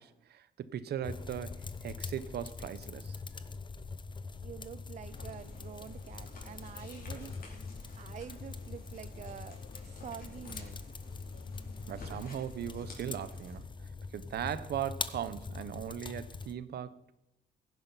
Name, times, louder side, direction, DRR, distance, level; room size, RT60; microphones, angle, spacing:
voice 1, 0.0-3.2 11.9-17.1, right 9 dB, 70° right, 0.9 m, -39 dB
sound 1, 1.0-16.5, left 4 dB, 25° left, 0.9 m, -43 dB
voice 2, 4.4-7.4 8.0-10.9, right 8 dB, 45° right, 0.4 m, -47 dB
sound 2, 5.1-13.6, left 3 dB, 60° left, 4.7 m, -51 dB
16.5 x 11.0 x 5.7 m
cardioid pair, 105°, 17 cm